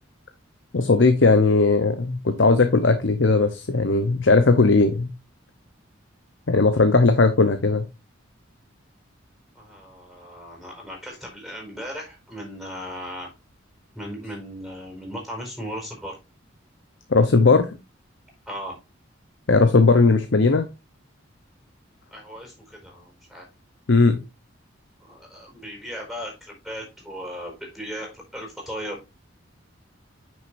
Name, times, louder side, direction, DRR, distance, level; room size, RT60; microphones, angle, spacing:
voice 1, 0.7-5.1 6.5-7.8 17.1-17.7 19.5-20.6 23.9-24.2, left 3 dB, 65° left, 8 dB, 0.8 m, -18 dB
voice 2, 9.5-13.3 13.9-16.2 18.5-18.8 22.1-22.5 22.8-23.5 25.1-29.0, equal, ahead, -1 dB, 4.6 m, -36 dB
8.7 x 6.4 x 2.6 m, 0.26 s
head